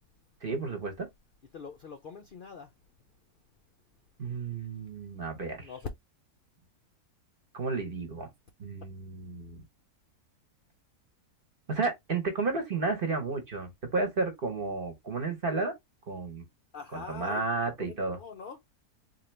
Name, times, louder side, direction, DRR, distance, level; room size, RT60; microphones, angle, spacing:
voice 1, 0.4-1.1 4.2-5.7 7.5-8.3 8.6-9.6 11.7-15.7 16.1-16.4 16.9-18.2, right 3 dB, 40° right, 0.9 m, -32 dB
voice 2, 1.5-2.7 5.6-5.9 8.2-8.3 16.7-17.5 17.8-18.6, left 5 dB, 80° left, 0.4 m, -42 dB
3.9 x 2.8 x 3.2 m
omnidirectional pair, 1.7 m